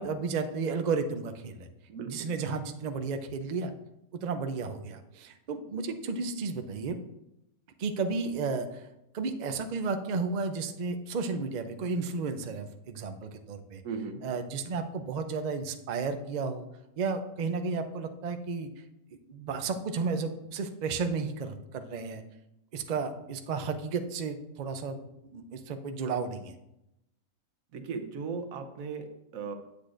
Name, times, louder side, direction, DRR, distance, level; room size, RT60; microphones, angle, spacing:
voice 1, 0.0-1.7 2.0-3.7 4.2-7.0 7.8-8.8 9.1-13.8 14.2-16.6 17.0-18.7 19.3-22.2 22.7-25.0 25.3-26.5, right 4 dB, 85° right, 7 dB, 0.3 m, -33 dB
voice 2, 1.9-2.3 13.8-14.2 27.7-29.6, right 5 dB, 70° right, 7 dB, 1.1 m, -37 dB
8.5 x 8.1 x 2.5 m, 0.87 s
omnidirectional pair, 1.6 m